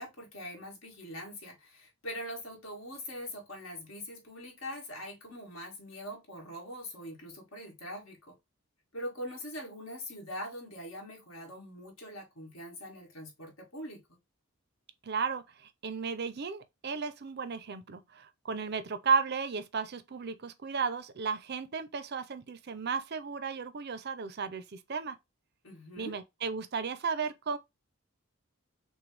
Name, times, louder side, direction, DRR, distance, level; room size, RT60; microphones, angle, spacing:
voice 1, 0.0-8.4 8.9-14.0 25.6-26.2, equal, 65° left, 1.9 m, -43 dB
voice 2, 15.0-25.2 26.0-27.6, right 5 dB, 50° right, 0.5 m, -34 dB
6.0 x 2.2 x 3.2 m
head